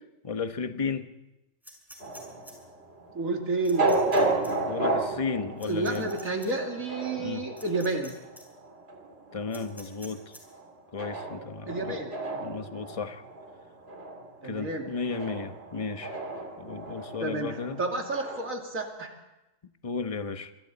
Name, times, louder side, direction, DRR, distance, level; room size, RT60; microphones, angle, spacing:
voice 1, 0.2-1.1 4.7-6.1 7.2-7.5 9.3-10.3 10.9-12.0 12.4-13.2 14.4-16.2 16.6-17.8 19.8-20.5, left 5 dB, 25° left, 8 dB, 1.1 m, -34 dB
sound 1, 1.6-2.5 3.6-4.2 4.4-4.5 5.6-6.5 7.6-8.1 8.4-8.5 9.5-10.4, equal, ahead, 6.0 m, -48 dB
sound 2, 2.0-18.5, right 2 dB, 50° right, 3.1 m, -33 dB
voice 2, 3.1-3.9 5.6-8.1 11.7-12.2 14.4-14.9 17.2-19.1, right 2 dB, 85° right, 2 dB, 2.9 m, -30 dB
27.5 x 24.5 x 4.1 m, 0.96 s
omnidirectional pair, 1.4 m